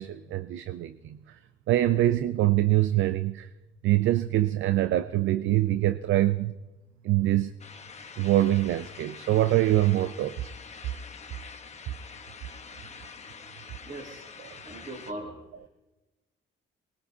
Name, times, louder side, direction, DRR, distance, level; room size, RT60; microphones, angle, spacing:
voice 1, 0.0-1.4 1.7-3.5 3.8-6.5 7.0-7.5 8.2-10.5, right 14 dB, 75° right, 0.5 m, -24 dB
sound 1, 7.6-15.1, left 5 dB, 35° left, 1.1 m, -46 dB
voice 2, 13.8-14.3 14.6-15.4, right 1 dB, 40° right, 5.1 m, -39 dB
23.0 x 20.5 x 2.8 m
cardioid pair, 90°, 20 cm